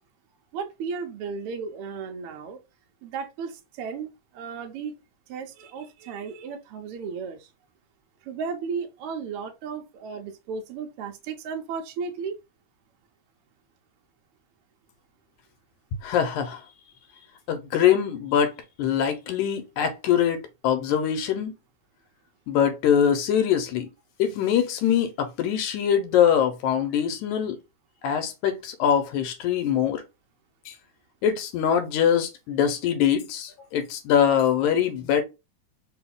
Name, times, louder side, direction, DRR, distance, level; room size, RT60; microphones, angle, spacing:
voice 1, 0.5-2.6 3.0-5.0 5.3-7.5 8.2-12.4, right 5 dB, 85° right, 1.2 m, -34 dB
voice 2, 16.0-16.6 17.5-18.5 18.8-20.4 20.6-21.5 22.5-23.9 24.2-27.6 28.0-30.0 31.2-35.2, left 9 dB, 85° left, 2.1 m, -23 dB
4.7 x 2.3 x 3.5 m
omnidirectional pair, 3.5 m